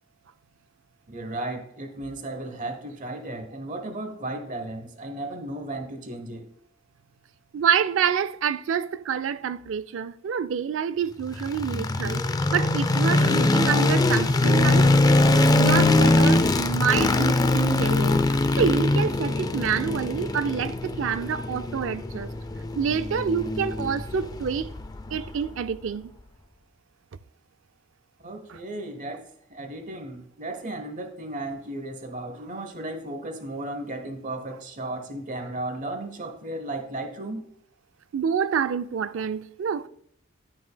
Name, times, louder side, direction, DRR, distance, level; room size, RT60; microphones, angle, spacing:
voice 1, 1.1-6.5 28.2-37.5, right 2 dB, 40° right, 1.0 m, -35 dB
voice 2, 7.5-12.2 12.5-14.9 15.6-22.3 22.8-24.7 25.1-26.1 28.5-28.6 38.1-39.9, right 7 dB, 70° right, 0.4 m, -27 dB
sound 1, 11.3-25.5, left 2 dB, 20° left, 0.3 m, -22 dB
11.0 x 6.0 x 2.2 m
head